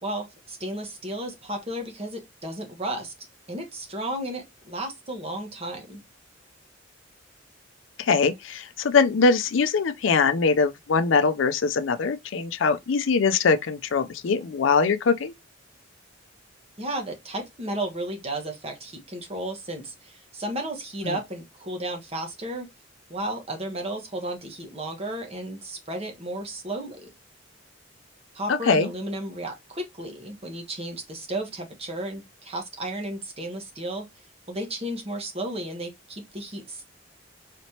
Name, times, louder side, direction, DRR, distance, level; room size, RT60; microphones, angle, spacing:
voice 1, 0.0-3.1 3.5-6.0 16.8-22.7 23.1-27.1 28.3-34.1 34.5-36.8, right 1 dB, 30° right, 1.1 m, -33 dB
voice 2, 8.0-15.3 21.0-21.2 28.5-28.9, left 4 dB, 75° left, 0.5 m, -22 dB
4.1 x 3.2 x 2.8 m
head